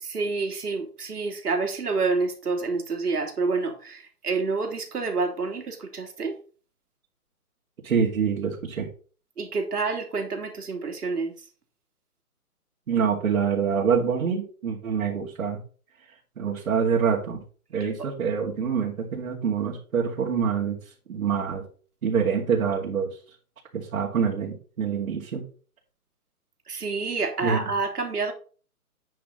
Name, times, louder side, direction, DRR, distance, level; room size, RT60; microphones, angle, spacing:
voice 1, 0.0-6.4 9.4-11.3 26.7-28.3, right 4 dB, 85° right, 3 dB, 3.1 m, -28 dB
voice 2, 7.8-8.9 12.9-15.6 16.4-17.4 17.7-20.8 21.1-21.6 22.0-23.1 23.7-25.4 27.4-27.7, right 6 dB, 60° right, -4 dB, 2.7 m, -25 dB
9.3 x 6.1 x 4.0 m, 0.39 s
hypercardioid pair, 155°, 45 cm